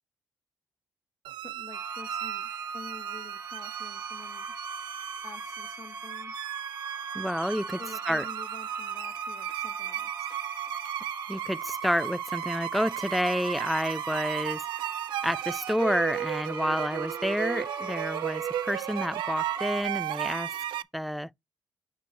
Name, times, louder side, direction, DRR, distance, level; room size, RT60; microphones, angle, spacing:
sound 1, 1.2-20.8, right 13 dB, 85° right, 0.3 m, -35 dB
voice 1, 1.4-4.5 5.2-6.3 7.8-10.1, left 5 dB, 45° left, 1.1 m, -48 dB
sound 2, 1.7-19.8, right 3 dB, 35° right, 1.1 m, -40 dB
voice 2, 7.1-7.8 8.1-8.3 11.3-14.6 15.2-20.5 20.9-21.3, equal, ahead, 0.3 m, -29 dB
8.1 x 6.2 x 2.7 m
supercardioid pair, 50°, 8 cm